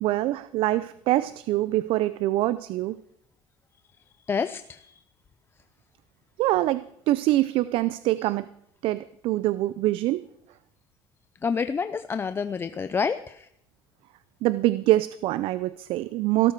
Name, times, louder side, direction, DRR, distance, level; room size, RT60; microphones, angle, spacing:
voice 1, 0.0-3.0 6.4-8.5 8.8-10.3 14.4-16.5, right 16 dB, 65° right, 0.6 m, -24 dB
voice 2, 4.3-5.0 11.4-13.5, left 5 dB, 25° left, 0.5 m, -28 dB
17.0 x 13.0 x 4.7 m
cardioid pair, 130°, 10 cm